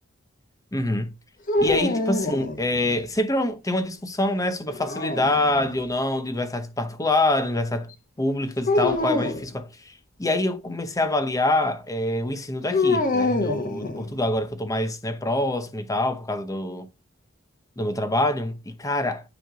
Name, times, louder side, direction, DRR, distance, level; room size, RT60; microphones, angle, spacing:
voice 1, 0.7-1.1 1.6-7.9 8.2-9.9 10.2-16.9 17.8-19.2, left 1 dB, 15° left, 0.8 m, -25 dB
sound 1, 1.5-3.0 4.7-5.8 8.7-9.5 12.7-14.3, left 2 dB, 45° left, 1.1 m, -25 dB
9.2 x 3.3 x 3.9 m
head